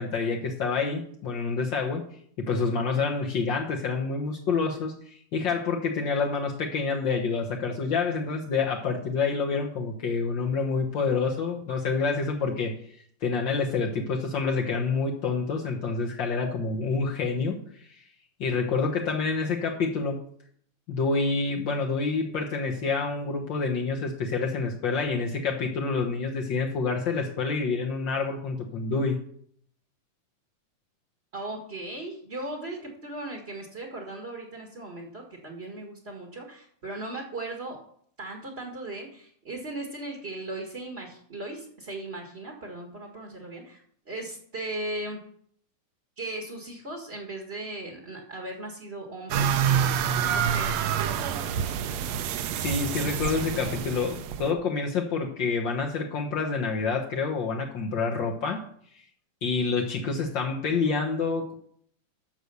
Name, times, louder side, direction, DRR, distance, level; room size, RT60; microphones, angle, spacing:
voice 1, 0.0-2.0 2.4-12.7 13.2-18.0 18.4-20.3 20.9-29.2 52.6-58.6 58.9-59.0 59.4-61.5, left 4 dB, 75° left, 0 dB, 1.0 m, -28 dB
voice 2, 31.3-37.8 38.2-45.2 46.2-50.9, right 2 dB, 35° right, 1 dB, 1.0 m, -37 dB
sound 1, 49.3-54.5, right 8 dB, 75° right, 1.6 m, -27 dB
9.7 x 6.5 x 6.8 m, 0.62 s
omnidirectional pair, 3.7 m